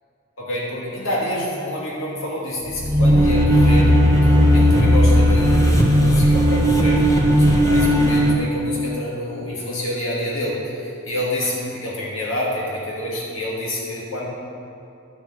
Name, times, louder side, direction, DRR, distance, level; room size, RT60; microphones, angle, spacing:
voice 1, 0.4-14.3, left 1 dB, 65° left, -5 dB, 2.6 m, -28 dB
sound 1, 2.7-8.3, equal, 15° left, 1.3 m, -15 dB
11.5 x 7.0 x 8.2 m, 2.7 s
head